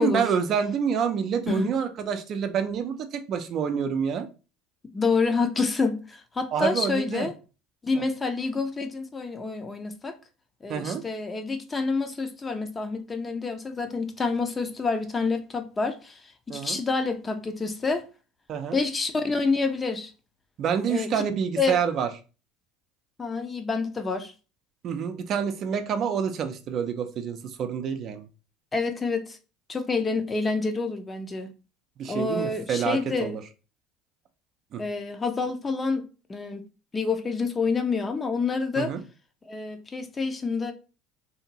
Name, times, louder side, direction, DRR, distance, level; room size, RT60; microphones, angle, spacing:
voice 1, 0.0-4.3 6.5-7.3 10.7-11.0 16.5-16.8 18.5-18.8 20.6-22.1 24.8-28.3 32.0-33.4 34.7-34.8 38.8-39.0, right 7 dB, 50° right, 0.4 m, -27 dB
voice 2, 4.9-7.3 7.8-10.2 10.6-16.2 16.5-18.0 18.7-20.1 20.9-21.1 21.6-21.8 23.2-24.3 28.7-29.4 29.7-31.5 32.1-33.4 34.8-36.0 36.3-36.6 36.9-38.9 39.5-40.7, left 4 dB, 25° left, 0.5 m, -28 dB
2.7 x 2.5 x 2.9 m
hypercardioid pair, 85°, 0 cm